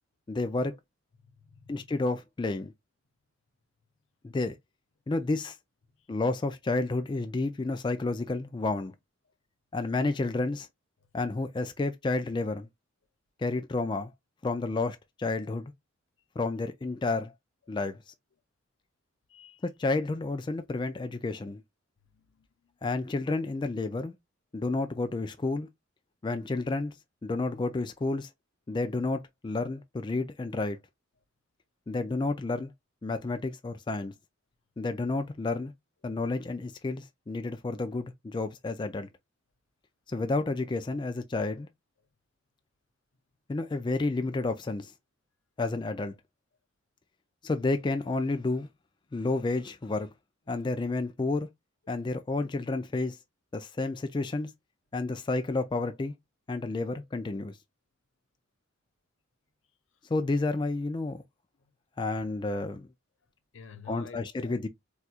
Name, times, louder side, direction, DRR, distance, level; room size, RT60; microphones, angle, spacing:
voice 1, 0.3-0.8 1.7-2.7 4.2-4.6 5.1-5.6 6.1-8.9 9.7-10.7 11.1-12.7 13.4-14.1 14.4-15.7 16.4-17.3 17.7-18.0 19.6-21.6 22.8-24.1 24.5-25.7 26.2-26.9 27.2-28.3 28.7-30.8 31.9-32.7 33.0-34.1 34.8-35.7 36.0-39.1 40.1-41.7 43.5-44.9 45.6-46.1 47.4-48.7 49.1-50.1 50.5-51.5 51.9-53.2 53.5-54.5 54.9-56.1 56.5-57.6 60.1-61.2 62.0-62.9 63.9-64.7, left 3 dB, 25° left, 0.3 m, -30 dB
voice 2, 1.2-1.9 6.0-6.1 19.3-19.6 22.1-22.8 61.6-61.7 63.5-64.6, left 5 dB, 85° left, 0.7 m, -50 dB
4.2 x 2.3 x 2.3 m
head